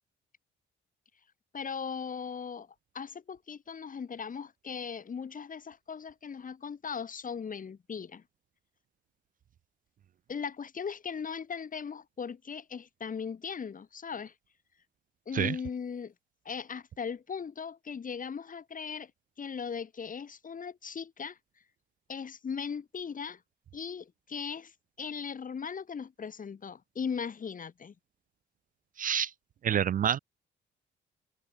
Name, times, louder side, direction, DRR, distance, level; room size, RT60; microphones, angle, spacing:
voice 1, 1.5-2.7 2.9-8.2 10.3-14.3 15.3-16.1 16.5-19.1 19.4-21.4 22.1-23.4 23.7-24.7 25.0-27.9, left 6 dB, 40° left, 3.8 m, -38 dB
voice 2, 29.0-29.3 29.6-30.2, right 9 dB, 45° right, 0.4 m, -27 dB
cardioid pair, 90°, 20 cm